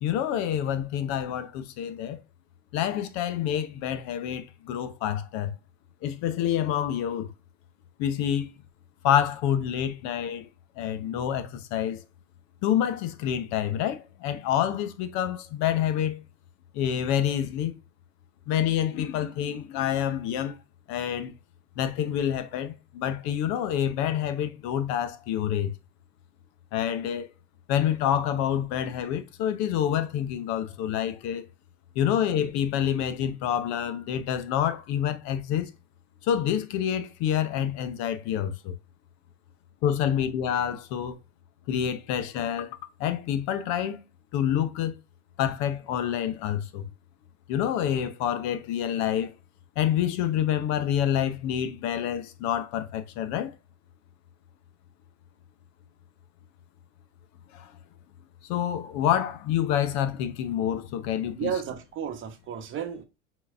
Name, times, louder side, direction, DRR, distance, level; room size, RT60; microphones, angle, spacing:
voice 1, 0.0-2.2 2.7-5.5 6.0-7.3 8.0-8.5 9.0-10.5 10.8-12.0 12.6-16.2 16.7-17.7 18.5-20.6 20.9-21.3 21.8-25.7 26.7-27.3 27.7-31.5 31.9-35.7 36.2-38.8 39.8-41.2 41.7-44.0 44.3-44.9 45.4-46.9 47.5-49.3 49.8-53.5 57.5-57.7 58.4-61.5, left 10 dB, 50° left, 0.8 m, -27 dB
voice 2, 61.4-63.0, right 8 dB, 35° right, 1.1 m, -32 dB
4.7 x 3.9 x 2.5 m
hypercardioid pair, 110°, 35 cm